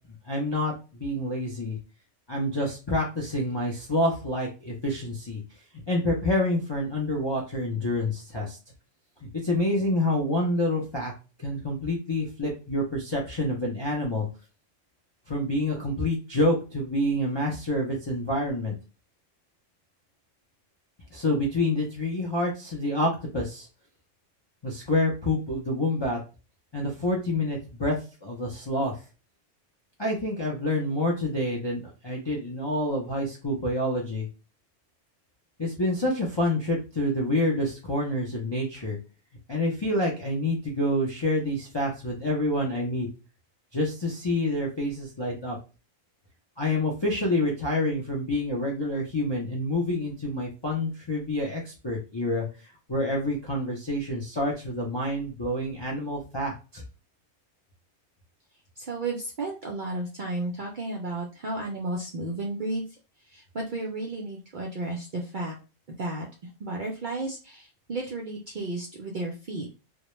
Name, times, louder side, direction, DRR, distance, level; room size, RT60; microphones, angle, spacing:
voice 1, 0.3-1.8 2.3-5.4 5.9-8.6 9.4-11.1 11.4-14.3 15.3-18.7 21.1-23.7 24.6-26.2 26.7-28.0 28.2-28.9 30.0-34.3 35.6-39.0 39.5-43.1 43.7-45.6 46.6-52.5 52.9-56.8, left 1 dB, 45° left, -3 dB, 0.3 m, -27 dB
voice 2, 58.8-62.8 63.3-65.6 66.0-66.3 66.6-69.7, right 2 dB, 60° right, -1 dB, 0.5 m, -33 dB
2.2 x 2.1 x 3.0 m, 0.32 s
omnidirectional pair, 1.3 m